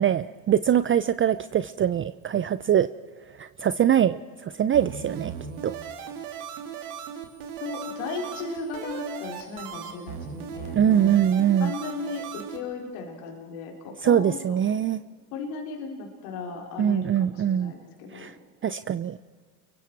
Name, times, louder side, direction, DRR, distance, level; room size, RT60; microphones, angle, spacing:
voice 1, 0.0-2.9 3.4-5.3 5.6-5.8 10.7-11.7 14.0-15.0 16.8-17.7 18.1-18.3 18.6-19.2, right 9 dB, 30° right, 14 dB, 0.6 m, -23 dB
sound 1, 4.7-12.6, right 7 dB, 75° right, 3.1 m, -38 dB
voice 2, 7.6-11.2 11.6-14.6 15.3-18.3, left 4 dB, 70° left, 1 dB, 4.1 m, -36 dB
30.0 x 23.0 x 4.7 m, 1.5 s
hypercardioid pair, 80°, 44 cm